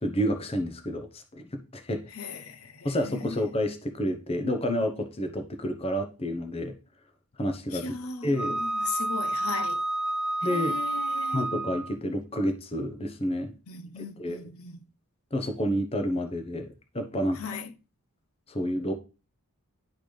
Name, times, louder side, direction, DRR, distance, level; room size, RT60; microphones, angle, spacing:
voice 1, 0.0-2.0 2.8-6.8 7.4-8.0 8.2-8.6 10.4-10.8 11.3-13.5 14.2-14.4 15.3-17.4 18.5-18.9, equal, 25° left, 0.8 m, -29 dB
voice 2, 2.1-3.4 7.7-9.8 10.5-11.4 13.7-14.8 17.4-17.7, left 5 dB, 70° left, 0.7 m, -38 dB
Wind instrument woodwind instrument, 8.4-12.0, right 2 dB, 5° right, 0.3 m, -29 dB
10.5 x 3.9 x 3.3 m
head